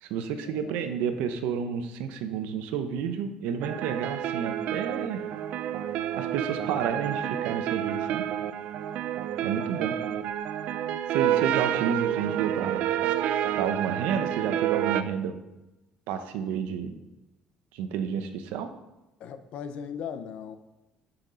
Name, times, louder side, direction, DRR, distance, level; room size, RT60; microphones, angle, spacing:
voice 1, 0.0-5.2 6.1-8.2 9.4-10.0 11.1-12.9 13.5-15.4 16.1-16.9 17.7-18.7, right 7 dB, 85° right, 9 dB, 0.8 m, -30 dB
sound 1, 3.6-15.0, right 11 dB, 55° right, 0.4 m, -29 dB
voice 2, 19.2-20.6, left 7 dB, 50° left, 10 dB, 0.6 m, -37 dB
6.7 x 5.9 x 5.0 m, 1.0 s
cardioid pair, 165°, 3 cm